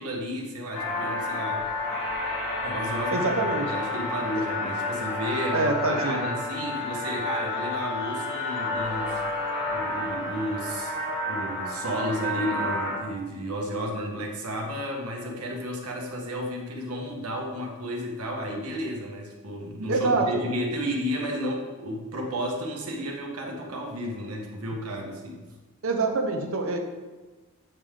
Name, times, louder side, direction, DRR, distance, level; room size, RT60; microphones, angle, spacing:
voice 1, 0.0-2.2 2.6-9.2 9.7-25.4, equal, 85° right, 0 dB, 1.3 m, -32 dB
sound 1, 0.7-13.0, left 2 dB, 60° left, 2.0 m, -30 dB
voice 2, 3.1-3.7 5.5-6.3 19.9-20.4 25.8-26.8, right 3 dB, 65° right, 4 dB, 0.9 m, -25 dB
8.1 x 5.4 x 3.7 m, 1.2 s
head